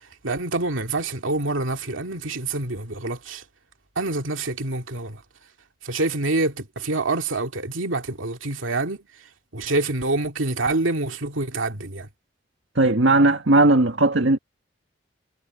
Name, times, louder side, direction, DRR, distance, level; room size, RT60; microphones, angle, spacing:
voice 1, 0.2-3.4 4.0-5.2 5.8-9.0 9.5-12.1, right 2 dB, 90° right, 2.4 m, -26 dB
voice 2, 12.8-14.4, right 2 dB, 70° right, 1.9 m, -17 dB
head